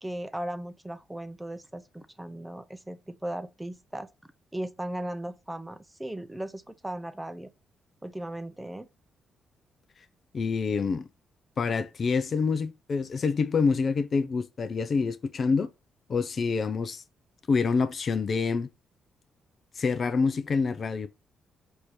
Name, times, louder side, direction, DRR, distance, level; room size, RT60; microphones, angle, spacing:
voice 1, 0.0-4.1 4.5-7.5 8.0-8.9, right 1 dB, 10° right, 0.6 m, -37 dB
voice 2, 10.3-11.1 11.6-15.7 16.1-17.0 17.5-18.7 19.8-21.1, left 5 dB, 55° left, 0.4 m, -26 dB
4.5 x 2.7 x 3.2 m
supercardioid pair, 55°, 0 cm